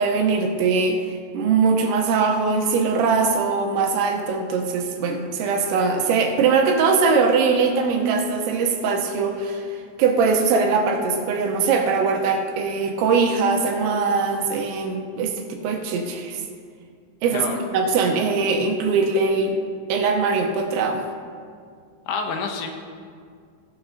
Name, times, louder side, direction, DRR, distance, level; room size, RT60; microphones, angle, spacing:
voice 1, 0.0-16.4 17.2-19.6 19.9-21.0, right 4 dB, 80° right, 2 dB, 3.1 m, -21 dB
voice 2, 22.1-22.7, left 5 dB, 80° left, 3 dB, 2.5 m, -28 dB
16.0 x 10.0 x 2.7 m, 2.2 s
omnidirectional pair, 5.4 m